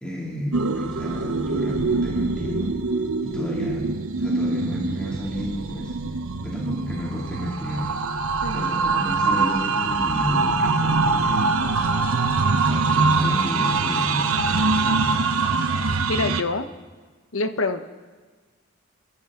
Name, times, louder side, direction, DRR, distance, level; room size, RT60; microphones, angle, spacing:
voice 1, 0.0-2.8 3.2-3.9 4.2-6.0 6.4-7.9 8.5-11.6 12.6-15.2, equal, 5° left, -5 dB, 2.6 m, -31 dB
sound 1, 0.5-16.4, right 4 dB, 85° right, 0.8 m, -23 dB
sound 2, 11.6-16.0, left 2 dB, 25° left, 1.5 m, -40 dB
voice 2, 16.1-16.7 17.3-17.8, left 3 dB, 70° left, 9 dB, 0.9 m, -26 dB
28.5 x 12.0 x 3.8 m, 1.4 s
head